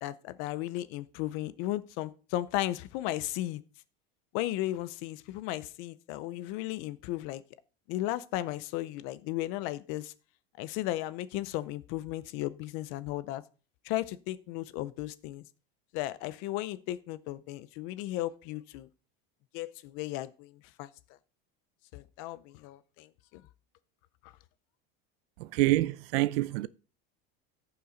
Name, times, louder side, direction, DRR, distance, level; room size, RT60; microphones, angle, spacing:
voice 1, 0.0-3.6 4.3-7.4 7.9-10.1 10.6-13.4 13.8-15.4 15.9-18.9 19.5-20.9 21.9-23.4 24.2-24.3, left 15 dB, 40° left, 0.5 m, -35 dB
voice 2, 25.4-26.7, right 18 dB, 70° right, 0.6 m, -27 dB
14.5 x 5.7 x 3.8 m
cardioid pair, 175°, 30 cm